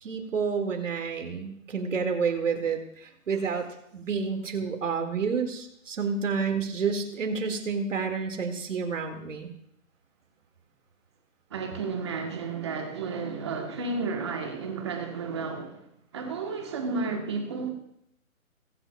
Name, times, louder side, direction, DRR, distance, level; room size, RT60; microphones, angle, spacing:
voice 1, 0.0-3.7 3.9-9.5, right 5 dB, 65° right, 2.0 m, -29 dB
voice 2, 11.5-17.7, right 4 dB, 20° right, 1.1 m, -32 dB
22.5 x 7.9 x 2.3 m
hypercardioid pair, 170°, 42 cm